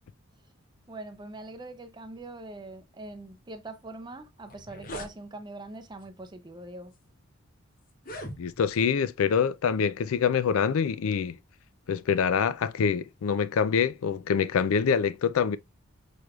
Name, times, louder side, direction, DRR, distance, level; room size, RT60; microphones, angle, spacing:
voice 1, 0.9-6.9, right 2 dB, 20° right, 0.5 m, -43 dB
sound 1, 4.0-4.1 4.4-5.1 6.0-6.2 6.9-7.0 7.9-8.8, equal, 40° left, 0.9 m, -41 dB
voice 2, 8.4-11.4 11.9-15.6, left 6 dB, 75° left, 0.4 m, -25 dB
6.0 x 3.3 x 2.3 m
head